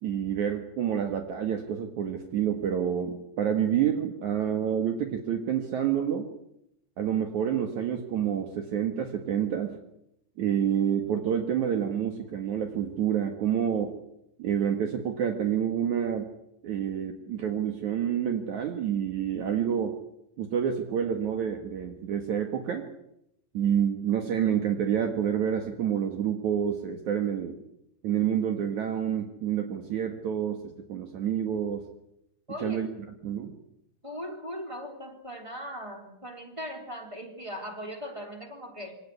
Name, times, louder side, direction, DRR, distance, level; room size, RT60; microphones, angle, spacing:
voice 1, 0.0-6.3 7.0-9.8 10.4-13.9 14.4-16.3 16.6-20.0 20.4-22.9 23.5-27.6 28.0-31.8 32.6-32.9 33.2-33.5, right 9 dB, 60° right, 5 dB, 2.0 m, -28 dB
voice 2, 32.5-32.8 34.0-39.0, equal, 5° right, 3 dB, 2.8 m, -39 dB
24.5 x 18.0 x 9.7 m, 0.82 s
omnidirectional pair, 5.9 m